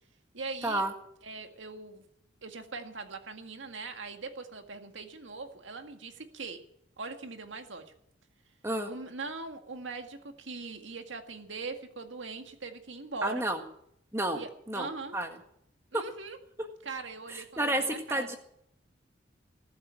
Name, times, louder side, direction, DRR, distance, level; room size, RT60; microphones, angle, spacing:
voice 1, 0.3-0.8 1.2-2.0 2.4-6.6 7.0-7.9 8.8-13.5 14.3-14.5 14.7-15.2 15.9-16.4 16.8-18.4, right 4 dB, 85° right, 6 dB, 1.9 m, -41 dB
voice 2, 13.2-13.6 14.1-14.4 14.7-14.9 15.1-15.3 15.9-16.0 17.3-18.4, right 1 dB, 15° right, 5 dB, 1.7 m, -30 dB
19.0 x 8.0 x 8.9 m, 0.72 s
head